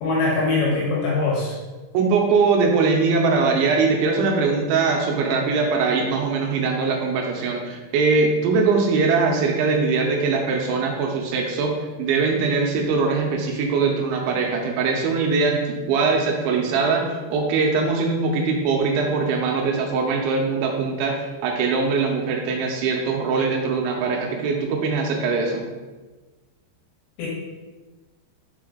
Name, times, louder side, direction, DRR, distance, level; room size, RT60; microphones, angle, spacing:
voice 1, 0.0-1.5 27.2-27.3, left 3 dB, 70° left, -4 dB, 2.7 m, -22 dB
voice 2, 1.9-25.7, right 4 dB, 85° right, 1 dB, 3.0 m, -22 dB
6.1 x 4.8 x 3.7 m, 1.2 s
omnidirectional pair, 5.4 m